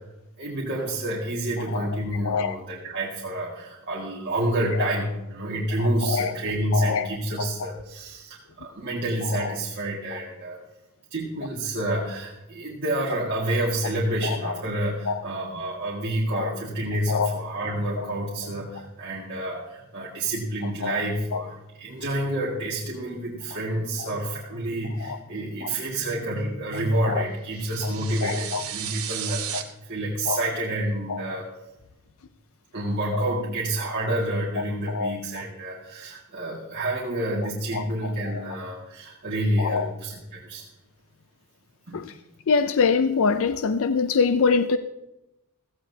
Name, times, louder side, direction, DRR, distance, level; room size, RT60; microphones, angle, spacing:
voice 1, 0.4-10.6 11.1-31.5 32.7-40.7 41.9-42.0, right 1 dB, 50° right, -5 dB, 2.0 m, -28 dB
voice 2, 2.2-2.5 4.8-4.9 5.8-6.3 6.7-7.1 7.4-7.7 9.3-9.5 10.1-10.2 14.2-14.6 15.1-15.2 16.3-16.5 17.1-17.4 18.0-18.1 20.8-21.0 21.3-21.4 25.0-25.2 25.6-25.7 27.0-27.2 27.8-27.9 28.2-28.6 29.5-29.6 30.3-30.4 31.1-31.4 33.1-33.2 34.6-35.2 37.7-38.4 39.6-39.9 41.9-42.1 42.5-44.8, left 5 dB, 65° left, 10 dB, 0.5 m, -25 dB
sound 1, 27.5-29.6, right 10 dB, 70° right, 1.1 m, -34 dB
16.0 x 14.5 x 2.8 m, 0.94 s
head